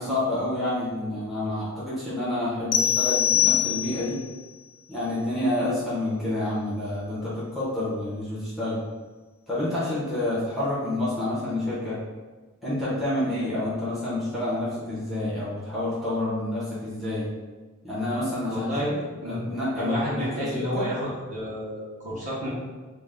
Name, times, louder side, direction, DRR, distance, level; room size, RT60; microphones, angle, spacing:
voice 1, 0.0-4.2 4.9-8.8 9.5-12.0 12.6-17.3 17.8-20.9, left 1 dB, ahead, -10 dB, 0.6 m, -28 dB
sound 1, 2.7-4.2, left 10 dB, 75° left, 0.3 m, -23 dB
voice 2, 18.4-18.9 19.2-19.5 19.8-22.5, equal, 35° right, -6 dB, 0.8 m, -30 dB
2.5 x 2.1 x 3.4 m, 1.3 s
head